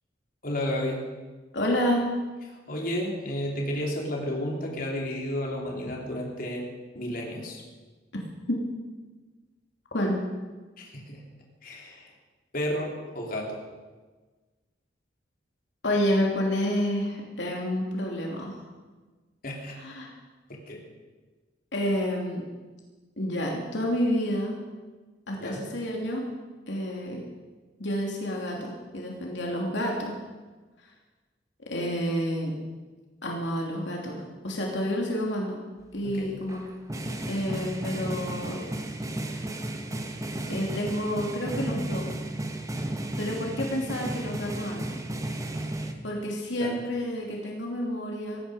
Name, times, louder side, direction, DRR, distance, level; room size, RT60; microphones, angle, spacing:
voice 1, 0.4-1.0 2.5-6.6 6.9-7.6 10.8-11.2 11.6-12.1 12.5-13.6 19.4-19.7 20.5-20.8 25.4-25.6 36.0-36.4 46.6-46.8, left 1 dB, 50° left, -1 dB, 3.3 m, -32 dB
voice 2, 1.5-2.1 8.5-8.6 9.9-10.2 15.8-18.6 19.8-20.1 21.7-22.4 23.2-24.6 25.3-26.3 26.7-27.2 27.8-30.2 30.8-30.9 31.7-32.5 33.2-35.6 35.9-36.6 37.3-38.6 39.2-39.4 40.5-42.1 43.2-44.8 46.0-48.4, equal, 80° left, -1 dB, 2.8 m, -29 dB
sound 1, 36.5-45.9, right 1 dB, 20° right, 1.3 m, -33 dB
18.0 x 14.5 x 5.1 m, 1.3 s
head